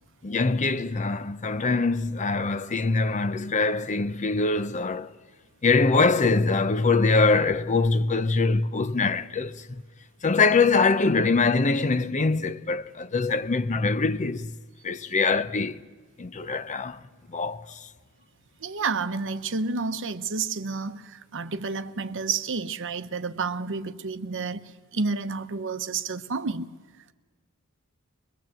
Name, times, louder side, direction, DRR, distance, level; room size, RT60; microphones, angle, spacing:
voice 1, 0.2-5.1 5.6-9.8 10.2-14.5 14.8-15.8 16.2-17.0 17.3-17.9, left 3 dB, 35° left, 0.6 m, -23 dB
voice 2, 18.6-26.7, right 4 dB, 60° right, 0.9 m, -30 dB
22.5 x 22.5 x 7.6 m
head